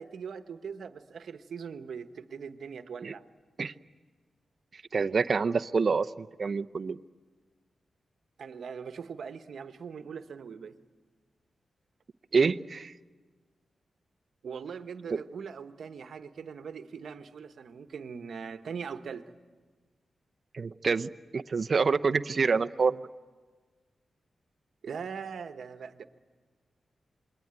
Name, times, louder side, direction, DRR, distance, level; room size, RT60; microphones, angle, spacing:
voice 1, 0.0-3.2 8.4-10.8 14.4-19.3 24.8-26.1, right 6 dB, 80° right, 9 dB, 1.2 m, -41 dB
voice 2, 4.9-7.0 12.3-12.9 15.1-15.2 20.5-23.0, right 5 dB, 55° right, 10 dB, 0.7 m, -27 dB
27.5 x 21.5 x 9.1 m, 1.4 s
cardioid pair, 55°, 0 cm